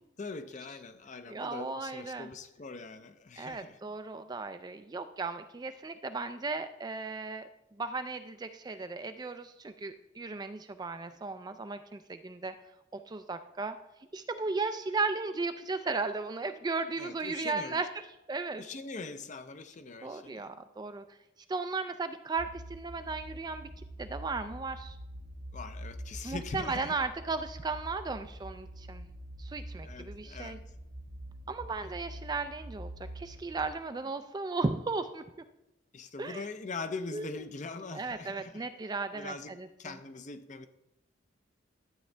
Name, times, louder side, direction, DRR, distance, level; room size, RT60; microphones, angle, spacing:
voice 1, 0.2-3.9 17.0-17.8 18.6-20.5 25.5-27.0 29.8-30.6 31.8-31.9 35.9-38.7 39.1-40.7, left 3 dB, 35° left, 10 dB, 0.5 m, -42 dB
voice 2, 1.3-2.3 3.4-7.4 7.8-12.5 12.9-13.8 14.1-17.9 18.3-18.6 20.0-21.0 21.5-23.7 24.0-25.0 26.2-29.0 29.4-30.6 31.5-32.9 33.2-35.2 36.2-36.4 37.1-37.3 37.9-40.0, right 3 dB, 20° right, 9 dB, 0.3 m, -35 dB
sound 1, 22.4-33.7, equal, 50° right, 0.8 m, -45 dB
12.0 x 8.2 x 3.3 m, 0.90 s
head